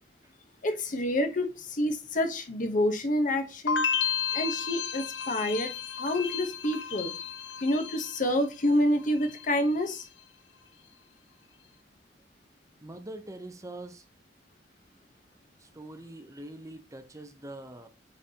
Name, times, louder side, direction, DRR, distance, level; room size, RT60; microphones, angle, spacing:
voice 1, 0.6-3.8 4.3-5.7 6.0-7.1 7.6-10.1, left 1 dB, 45° left, 1.0 m, -28 dB
sound 1, 3.7-8.7 9.0-9.6, left 7 dB, 85° left, 0.6 m, -33 dB
voice 2, 12.8-14.0 15.6-17.9, right 1 dB, 20° right, 0.7 m, -43 dB
8.7 x 4.0 x 2.8 m
head